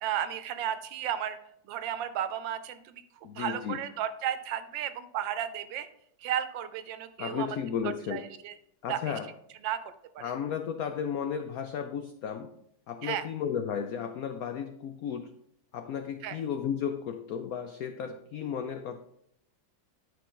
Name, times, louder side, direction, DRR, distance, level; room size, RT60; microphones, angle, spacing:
voice 1, 0.0-1.4 1.7-3.0 3.3-5.9 6.2-7.5 7.8-8.5 8.9-9.2 9.6-10.2 13.0-13.2 16.2-16.4, right 10 dB, 75° right, 12 dB, 1.3 m, -33 dB
voice 2, 3.2-3.8 7.2-8.2 8.8-9.3 10.2-12.5 12.9-15.3 15.7-19.0, left 7 dB, 85° left, 8 dB, 0.7 m, -34 dB
10.5 x 4.7 x 3.8 m, 0.72 s
omnidirectional pair, 2.1 m